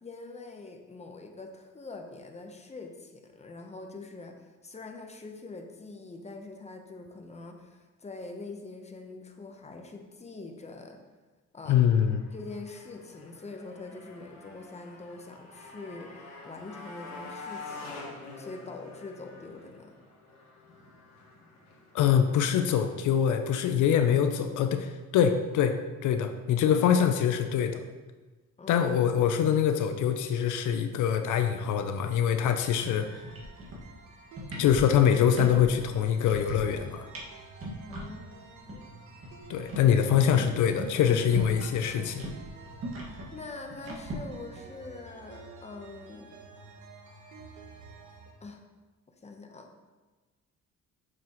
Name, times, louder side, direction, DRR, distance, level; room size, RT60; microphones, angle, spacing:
voice 1, 0.0-11.0 11.5-11.9 12.3-16.1 16.4-18.1 18.4-19.9 28.6-28.9 37.9-39.0 43.3-46.3 48.4-48.6 49.2-49.7, left 3 dB, 20° left, 3 dB, 0.9 m, -44 dB
voice 2, 11.7-12.2 21.9-27.8 28.7-33.1 34.6-37.0 39.5-42.3, left 8 dB, 80° left, 7 dB, 0.5 m, -24 dB
Motorcycle, 11.7-23.8, left 3 dB, 65° left, 1.6 m, -47 dB
sound 1, 32.3-48.3, right 3 dB, 75° right, 1.1 m, -50 dB
sound 2, 32.8-33.0 33.2-34.0 34.3-35.7 36.0-36.8 37.1-37.3 37.6-38.1 38.4-38.5 38.7-38.8 39.1-41.7 42.0-44.2, equal, 50° right, 1.9 m, -38 dB
6.8 x 6.1 x 3.0 m, 1.3 s
cardioid pair, 90°, 30 cm